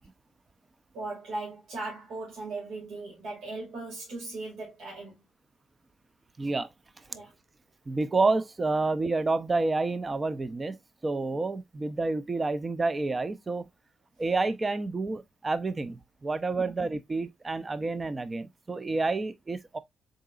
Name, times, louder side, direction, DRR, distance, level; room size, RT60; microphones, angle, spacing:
voice 1, 0.9-5.2 7.1-7.3 16.6-16.7, right 2 dB, 75° right, 2.0 m, -38 dB
voice 2, 6.4-6.7 7.9-10.8 11.0-13.7 14.2-19.8, right 3 dB, 25° right, 0.5 m, -29 dB
3.8 x 3.8 x 2.4 m
cardioid pair, 90°, 0 cm